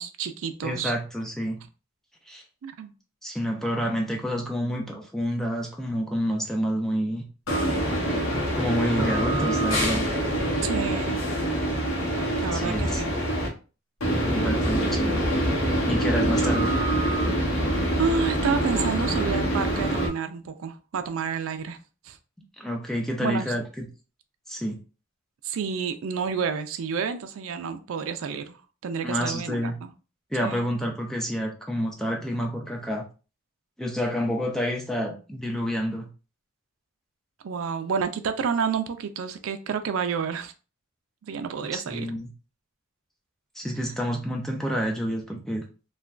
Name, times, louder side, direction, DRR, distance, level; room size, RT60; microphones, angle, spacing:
voice 1, 0.0-0.9 2.6-2.9 10.6-11.2 12.4-13.1 17.5-21.8 22.0-22.2 23.2-23.5 25.4-28.6 28.8-29.9 30.4-30.7 37.4-40.5 41.3-42.1, right 6 dB, 70° right, 0.4 m, -29 dB
voice 2, 0.6-1.6 2.3-2.4 3.2-7.2 8.5-10.1 12.5-13.0 14.3-15.2 15.9-16.8 22.6-23.9 24.5-24.8 29.0-29.8 30.3-33.1 33.8-36.1 41.6-42.3 43.6-45.6, equal, ahead, 0.4 m, -28 dB
sound 1, 7.5-13.5 14.0-20.1, right 1 dB, 80° left, 0.9 m, -25 dB
3.2 x 2.2 x 2.4 m
head